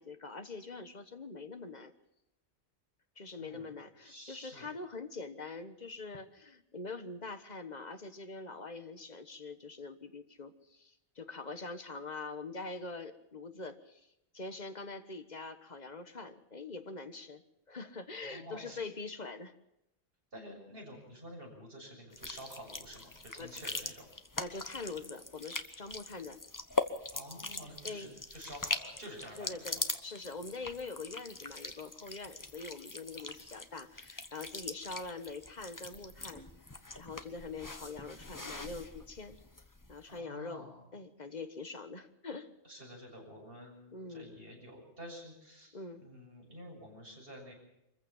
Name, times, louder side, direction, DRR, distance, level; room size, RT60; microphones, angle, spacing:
voice 1, 0.0-1.9 3.2-14.1 14.3-17.4 17.7-19.5 23.4-23.6 24.4-26.4 27.8-28.2 29.4-36.4 37.0-39.4 39.9-42.5 43.9-44.3 45.7-46.0, left 3 dB, 40° left, 9 dB, 1.5 m, -44 dB
voice 2, 3.4-3.7 4.0-4.7 18.2-18.8 20.3-24.1 27.1-29.8 40.1-40.9 42.6-45.7 46.0-47.5, equal, 60° right, 0 dB, 7.2 m, -49 dB
sound 1, 22.1-40.0, left 2 dB, 20° left, 1.1 m, -41 dB
24.5 x 15.0 x 7.2 m, 0.86 s
omnidirectional pair, 1.1 m